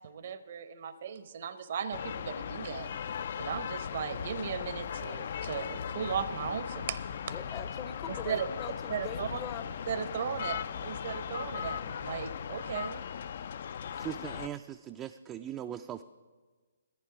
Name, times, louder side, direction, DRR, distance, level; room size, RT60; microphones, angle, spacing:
voice 1, 0.0-2.9 3.4-7.0 8.2-8.5 8.9-9.4 9.9-13.1, right 7 dB, 55° right, 12 dB, 0.8 m, -36 dB
sound 1, 1.9-14.5, left 8 dB, 55° left, 0.4 m, -38 dB
voice 2, 7.3-9.7, left 8 dB, 25° left, 12 dB, 0.7 m, -42 dB
voice 3, 13.9-16.0, right 10 dB, 20° right, 7 dB, 0.4 m, -40 dB
14.0 x 10.5 x 4.8 m, 1.4 s
figure-of-eight pair, 135°, 0 cm